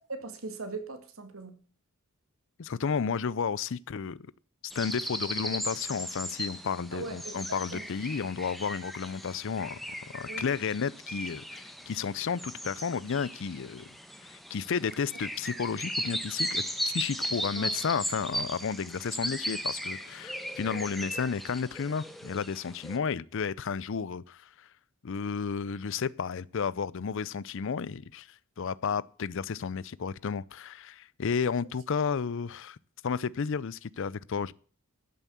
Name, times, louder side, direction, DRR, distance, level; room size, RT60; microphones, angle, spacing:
voice 1, 0.1-1.6 6.9-7.4 7.7-7.9 10.3-10.4 17.6-17.7, right 3 dB, 75° right, 2.0 m, -39 dB
voice 2, 2.6-4.3 4.7-9.8 10.1-13.9 14.3-24.5 25.0-28.3 28.6-32.8 33.0-34.5, left 6 dB, 65° left, 0.5 m, -32 dB
sound 1, 4.7-23.0, equal, ahead, 1.2 m, -37 dB
13.0 x 7.3 x 6.9 m
head